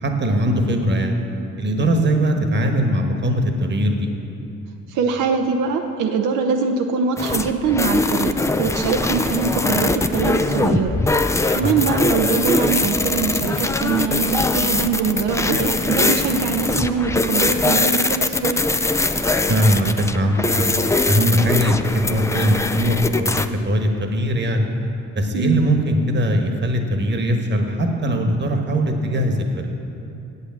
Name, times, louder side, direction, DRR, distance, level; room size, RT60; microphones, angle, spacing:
voice 1, 0.0-1.2 1.6-4.1 11.6-11.7 19.5-20.7 21.1-24.6 25.1-29.7, equal, 35° right, 4 dB, 1.2 m, -20 dB
voice 2, 4.9-8.3 8.6-11.0 11.5-18.6 25.3-25.6, right 5 dB, 85° right, 4 dB, 0.8 m, -22 dB
sound 1, 7.2-23.5, left 2 dB, 10° left, 0.4 m, -21 dB
8.4 x 8.2 x 7.4 m, 2.9 s
cardioid pair, 90°, 30 cm